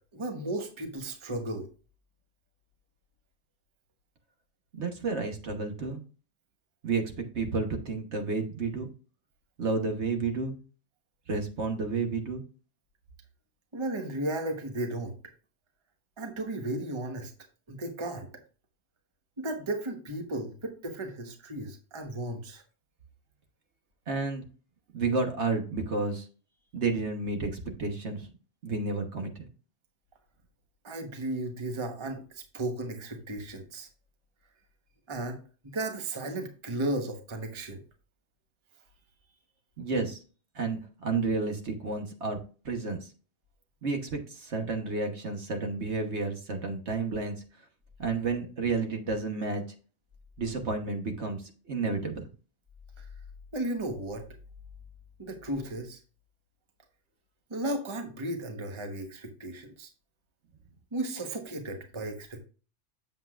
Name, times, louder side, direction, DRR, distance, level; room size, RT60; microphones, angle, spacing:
voice 1, 0.1-1.7 13.7-15.1 16.2-17.3 17.7-18.3 19.4-22.6 30.8-33.9 35.1-35.4 35.7-37.8 53.0-53.1 53.5-54.3 55.2-56.0 57.5-59.9 60.9-62.4, right 1 dB, 25° right, 4 dB, 1.1 m, -34 dB
voice 2, 4.8-6.0 6.8-8.9 9.6-10.6 11.3-12.4 24.1-24.4 24.9-26.3 26.7-28.3 28.6-29.4 39.8-40.2 40.5-42.4 42.6-43.0 43.8-47.3 48.0-49.6 50.4-51.4 51.7-52.2, right 4 dB, 60° right, 4 dB, 1.5 m, -31 dB
8.0 x 7.5 x 2.4 m, 0.37 s
omnidirectional pair, 1.3 m